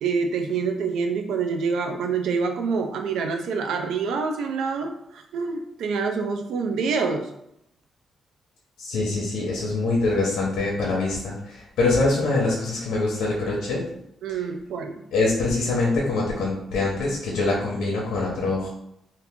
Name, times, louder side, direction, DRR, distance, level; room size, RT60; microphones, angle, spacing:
voice 1, 0.0-7.3 14.2-14.9, right 5 dB, 85° right, 4 dB, 0.3 m, -26 dB
voice 2, 8.8-13.8 14.3-14.4 15.1-18.7, left 3 dB, 90° left, -3 dB, 0.7 m, -24 dB
2.8 x 2.5 x 3.5 m, 0.79 s
cardioid pair, 150°, 0 cm